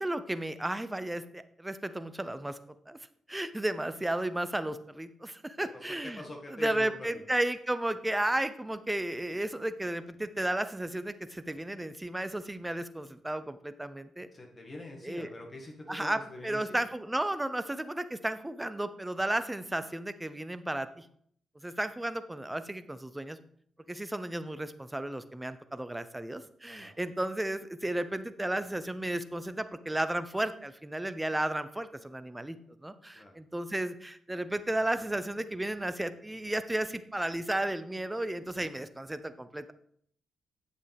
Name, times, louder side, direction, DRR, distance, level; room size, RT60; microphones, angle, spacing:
voice 1, 0.0-2.6 2.9-3.0 3.3-6.2 6.5-14.3 15.0-15.3 15.9-21.1 21.6-23.4 23.9-32.6 32.8-39.7, right 1 dB, 15° right, 12 dB, 0.8 m, -33 dB
voice 2, 5.6-7.2 14.3-16.8 26.7-27.0 33.1-33.3, left 2 dB, 40° left, 1 dB, 1.8 m, -45 dB
8.7 x 7.3 x 3.5 m, 0.64 s
supercardioid pair, 50°, 0 cm